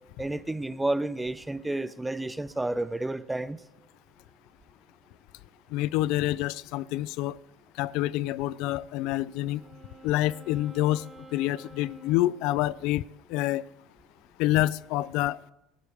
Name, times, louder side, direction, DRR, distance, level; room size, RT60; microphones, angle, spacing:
voice 1, 0.2-3.6, right 2 dB, 10° right, 0.5 m, -30 dB
voice 2, 5.7-7.4 7.8-9.6 10.0-11.0 11.3-13.0 13.3-13.6 14.4-15.5, left 15 dB, 75° left, 0.4 m, -27 dB
Wind instrument woodwind instrument, 8.7-13.1, right 3 dB, 25° right, 4.1 m, -51 dB
18.5 x 12.5 x 3.5 m
cardioid pair, 130°, 0 cm